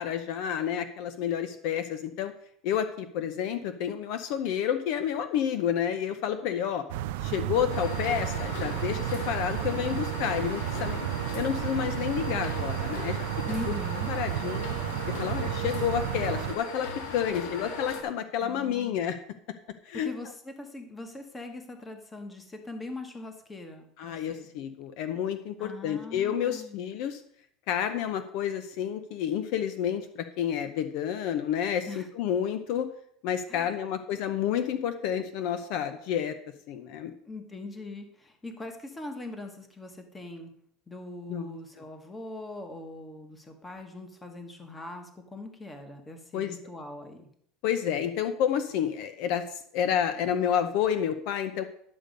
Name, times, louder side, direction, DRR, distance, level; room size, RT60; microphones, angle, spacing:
voice 1, 0.0-2.3 2.6-6.8 7.2-11.1 11.3-13.3 14.1-14.7 15.1-19.2 19.8-20.1 24.0-27.2 27.7-32.9 33.2-36.4 36.7-37.1 41.3-41.6 46.3-46.5 47.6-51.6, left 9 dB, 50° left, 10 dB, 0.7 m, -30 dB
sound 1, 6.9-16.6, right 13 dB, 75° right, 0.5 m, -32 dB
sound 2, 7.7-18.0, left 2 dB, 85° left, 1.7 m, -38 dB
voice 2, 13.4-14.1 18.4-19.0 20.0-24.5 25.6-26.9 31.9-32.1 33.5-33.9 37.3-40.5 40.9-47.3, left 2 dB, 10° left, 5 dB, 1.1 m, -41 dB
11.0 x 6.8 x 5.2 m, 0.67 s
cardioid pair, 175°, 0 cm